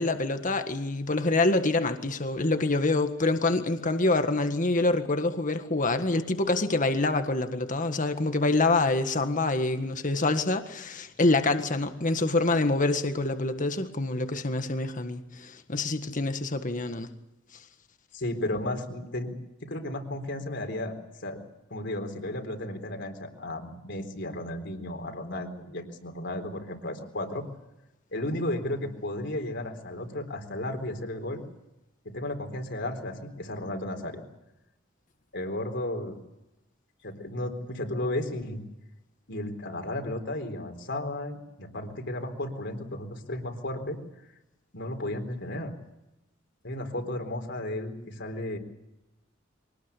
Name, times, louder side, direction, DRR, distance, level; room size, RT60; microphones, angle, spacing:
voice 1, 0.0-17.1, left 2 dB, 45° left, 8 dB, 1.7 m, -26 dB
voice 2, 18.1-19.4 19.6-20.9 21.2-21.4 21.7-27.4 28.1-31.4 32.0-34.2 35.3-36.2 37.0-38.6 39.3-44.0 44.7-45.7 46.6-48.6, left 1 dB, 65° left, 5 dB, 3.9 m, -34 dB
24.0 x 19.0 x 8.3 m, 0.94 s
head